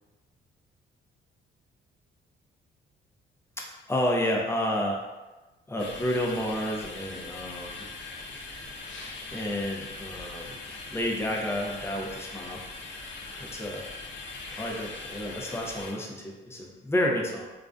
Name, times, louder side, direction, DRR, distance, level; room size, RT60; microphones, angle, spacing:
voice 1, 3.6-5.0 5.7-7.9 9.2-10.6 10.9-12.7 13.4-13.9 14.5-17.5, left 1 dB, 15° left, -1 dB, 0.5 m, -30 dB
sound 1, 5.8-15.9, left 3 dB, 70° left, 0.5 m, -41 dB
2.4 x 2.1 x 2.4 m, 1.1 s
cardioid pair, 90°, 20 cm